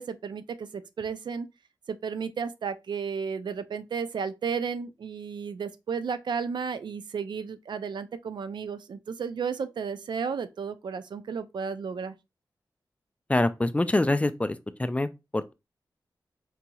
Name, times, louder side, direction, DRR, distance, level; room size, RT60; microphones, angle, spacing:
voice 1, 0.0-1.5 1.9-12.1, right 6 dB, 70° right, 0.3 m, -33 dB
voice 2, 13.3-15.5, left 2 dB, 15° left, 0.3 m, -26 dB
3.9 x 2.8 x 2.3 m
cardioid pair, 65°, 8 cm